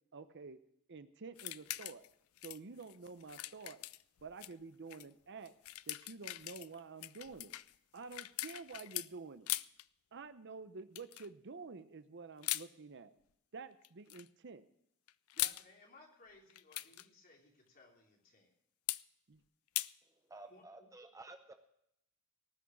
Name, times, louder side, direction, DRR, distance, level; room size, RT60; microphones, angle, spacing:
voice 1, 0.1-0.6 0.9-2.0 2.4-3.8 4.2-5.5 5.9-7.5 7.9-9.5 10.1-13.1 13.5-14.6 19.3-19.4, right 4 dB, 55° right, 12 dB, 0.7 m, -49 dB
sound 1, 1.4-2.1 2.4-4.5 4.9-5.1 5.5-9.1 9.5-9.8 11.0-11.3 12.4-12.7 13.8-14.3 15.1-15.6 16.5-17.1 18.9-19.0 19.8-19.9, left 17 dB, 85° left, 0.4 m, -41 dB
voice 2, 15.3-18.5 20.5-20.9, left 3 dB, 45° left, 0 dB, 3.3 m, -61 dB
voice 3, 20.0-21.6, right 2 dB, 15° right, 7 dB, 0.6 m, -53 dB
19.0 x 6.3 x 7.1 m, 0.75 s
head